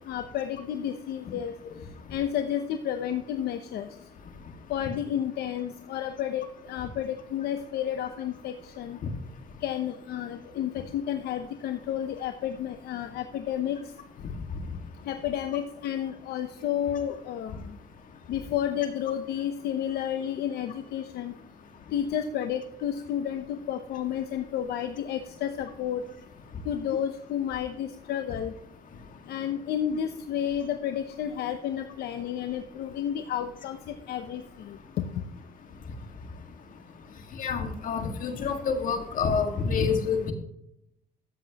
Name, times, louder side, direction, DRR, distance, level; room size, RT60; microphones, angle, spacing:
voice 1, 0.1-1.5 2.1-3.9 4.7-9.0 9.6-13.8 15.0-17.8 18.3-21.3 21.9-26.0 26.6-28.5 29.3-35.0, left 10 dB, 70° left, 7 dB, 0.8 m, -31 dB
voice 2, 37.4-40.3, left 5 dB, 50° left, 5 dB, 1.8 m, -27 dB
13.5 x 7.6 x 2.9 m, 0.78 s
cardioid pair, 110°, 17 cm